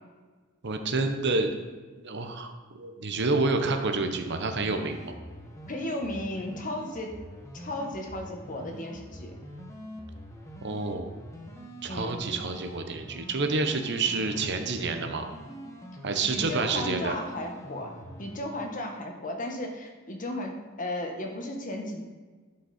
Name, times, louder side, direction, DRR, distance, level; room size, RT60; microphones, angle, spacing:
voice 1, 0.6-1.5 2.0-5.1 10.6-11.1 11.8-15.3 16.0-17.1, right 3 dB, 55° right, 6 dB, 0.9 m, -28 dB
sound 1, 4.2-18.4, equal, 15° left, 1.1 m, -44 dB
voice 2, 5.7-7.2 7.5-9.3 11.9-12.2 16.2-17.9 18.2-22.0, left 1 dB, 40° left, 3 dB, 1.3 m, -35 dB
11.5 x 5.5 x 4.3 m, 1.4 s
head